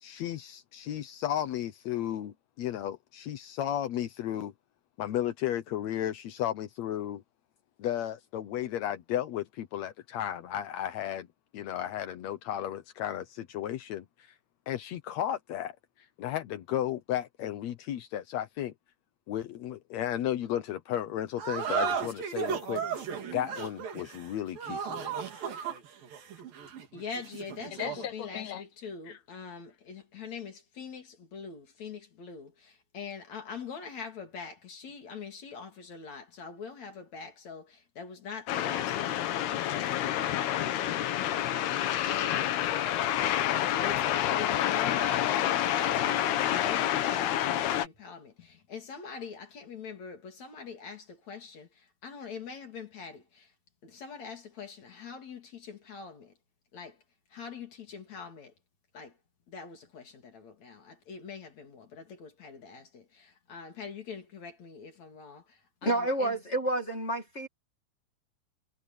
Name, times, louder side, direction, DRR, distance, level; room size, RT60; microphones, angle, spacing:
voice 1, 0.0-4.5 5.0-7.2 7.8-11.3 11.5-14.3 14.7-18.7 19.3-25.4 27.7-28.6 29.1-29.2, left 11 dB, 75° left, 1.6 m, -34 dB
sound 1, 21.4-28.1, right 7 dB, 65° right, 4.6 m, -35 dB
voice 2, 26.9-53.5 53.8-56.3 56.7-57.0 57.3-58.5 58.9-59.2 59.5-66.4, left 5 dB, 50° left, 4.0 m, -44 dB
sound 2, 38.5-47.9, left 12 dB, 90° left, 3.4 m, -28 dB
voice 3, 65.8-67.5, right 1 dB, 25° left, 1.8 m, -29 dB
omnidirectional pair, 4.4 m